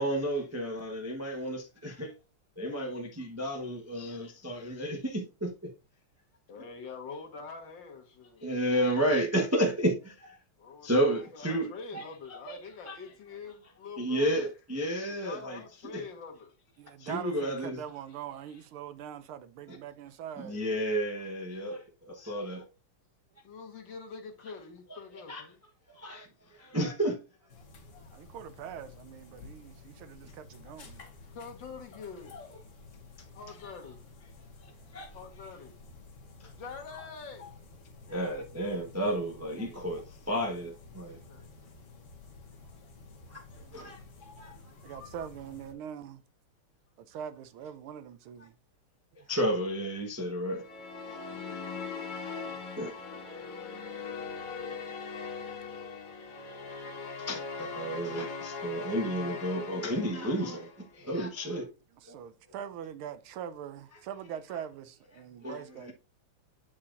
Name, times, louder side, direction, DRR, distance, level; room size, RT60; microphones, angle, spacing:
voice 1, 0.0-2.1 2.6-5.5 8.4-10.4 10.8-12.0 12.3-12.6 12.8-13.0 14.0-15.6 15.9-16.0 17.0-17.8 19.7-19.8 20.4-22.6 25.3-25.4 25.9-27.2 34.6-35.1 36.4-36.5 38.1-41.2 43.3-44.0 44.4-44.5 49.3-50.6 51.0-51.2 52.8-52.9 57.2-60.7 60.9-61.7 62.1-62.2 65.4-65.9, right 1 dB, 15° right, 0.5 m, -32 dB
voice 2, 6.5-8.5 10.6-14.5 15.1-16.5 23.4-25.6 27.9-28.3 31.3-32.5 33.4-34.0 35.1-35.8 36.5-37.5 41.3-41.5 42.7-42.9 43.6-43.9 44.7-45.2, left 5 dB, 60° left, 2.0 m, -45 dB
voice 3, 16.8-20.6 28.1-31.1 44.8-46.2 47.0-48.5 51.3-51.6 62.0-65.9, right 9 dB, 80° right, 1.6 m, -42 dB
sound 1, 27.5-45.7, left 3 dB, 45° left, 1.2 m, -52 dB
sound 2, 50.5-60.9, left 5 dB, 85° left, 2.3 m, -40 dB
8.7 x 5.6 x 2.5 m
omnidirectional pair, 2.3 m